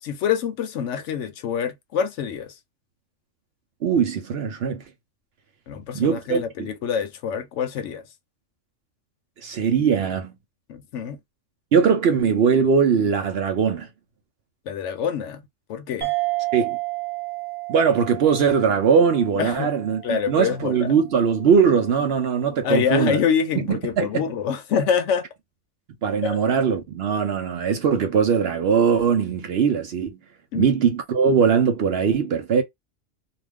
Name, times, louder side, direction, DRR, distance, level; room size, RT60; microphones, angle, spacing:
voice 1, 0.0-2.6 5.7-8.0 10.7-11.2 14.7-15.4 15.7-16.1 19.4-19.7 20.0-20.9 22.6-25.3 26.2-26.4 30.5-30.7, left 7 dB, 70° left, 0.9 m, -25 dB
voice 2, 3.8-4.8 5.9-6.7 9.4-10.3 11.7-13.9 16.5-16.8 17.7-23.2 23.6-24.2 26.0-30.2 30.5-32.6, right 6 dB, 60° right, 0.7 m, -20 dB
sound 1, 16.0-20.9, right 21 dB, 40° right, 0.3 m, -31 dB
2.5 x 2.3 x 3.4 m
omnidirectional pair, 1.4 m